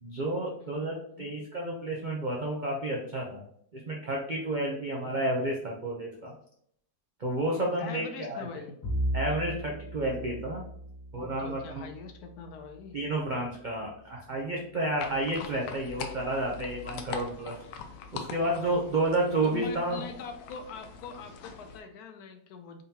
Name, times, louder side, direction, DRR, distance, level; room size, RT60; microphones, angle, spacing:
voice 1, 0.0-3.4 3.7-6.3 7.2-8.5 9.1-10.7 11.1-11.8 12.9-17.6 18.1-20.0, right 1 dB, 90° right, -2 dB, 0.4 m, -31 dB
voice 2, 0.6-1.3 5.0-5.2 7.8-9.0 11.1-13.0 19.4-22.8, left 5 dB, 70° left, 6 dB, 1.0 m, -43 dB
Bowed string instrument, 8.8-13.4, equal, 25° left, 1.3 m, -37 dB
sound 1, 15.0-21.8, left 6 dB, 85° left, 1.3 m, -43 dB
3.9 x 3.7 x 2.8 m, 0.68 s
omnidirectional pair, 1.9 m